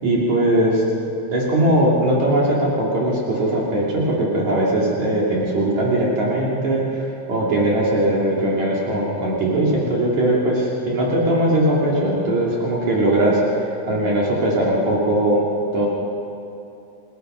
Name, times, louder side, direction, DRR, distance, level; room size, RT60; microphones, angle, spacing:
voice 1, 0.0-0.8 1.3-7.0 7.3-15.4 15.7-15.9, right 1 dB, 70° right, -5 dB, 4.0 m, -20 dB
29.0 x 16.5 x 5.6 m, 2.8 s
omnidirectional pair, 3.4 m